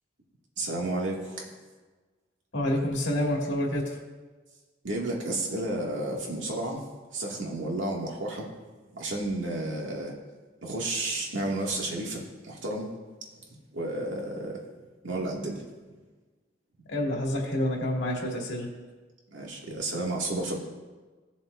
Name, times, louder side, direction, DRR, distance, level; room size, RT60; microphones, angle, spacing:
voice 1, 0.6-1.5 4.8-6.8 7.1-8.5 8.9-10.1 10.6-12.9 13.7-14.6 15.0-15.6 19.3-20.6, right 2 dB, 80° right, -2 dB, 2.3 m, -32 dB
voice 2, 2.5-4.0 16.9-18.7, left 1 dB, 65° left, -2 dB, 2.4 m, -28 dB
18.0 x 7.3 x 2.7 m, 1.3 s
head